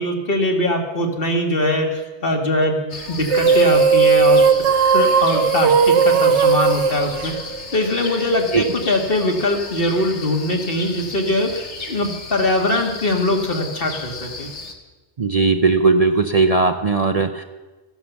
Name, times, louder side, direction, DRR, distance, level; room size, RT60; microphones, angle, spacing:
voice 1, 0.0-4.4 4.9-7.3 7.7-14.5, left 1 dB, 55° left, 2 dB, 2.0 m, -22 dB
sound 1, 2.9-14.7, left 3 dB, 80° left, 1.8 m, -34 dB
sound 2, 3.2-7.9, right 5 dB, 90° right, 1.1 m, -16 dB
voice 2, 15.2-17.4, right 4 dB, 40° right, 6 dB, 0.6 m, -17 dB
14.5 x 11.5 x 7.1 m, 1.2 s
omnidirectional pair, 1.2 m